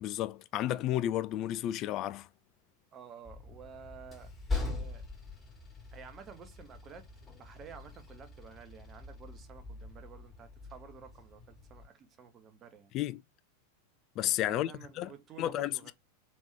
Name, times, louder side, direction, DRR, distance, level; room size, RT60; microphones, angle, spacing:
voice 1, 0.0-2.3 12.9-13.2 14.2-15.1 15.4-15.9, left 13 dB, 35° left, 0.3 m, -32 dB
voice 2, 2.9-5.0 5.9-12.9 14.4-15.9, right 7 dB, 25° right, 0.9 m, -51 dB
Train, 3.2-11.8, left 3 dB, 15° left, 2.0 m, -42 dB
3.5 x 3.0 x 3.3 m
figure-of-eight pair, 90°, 0 cm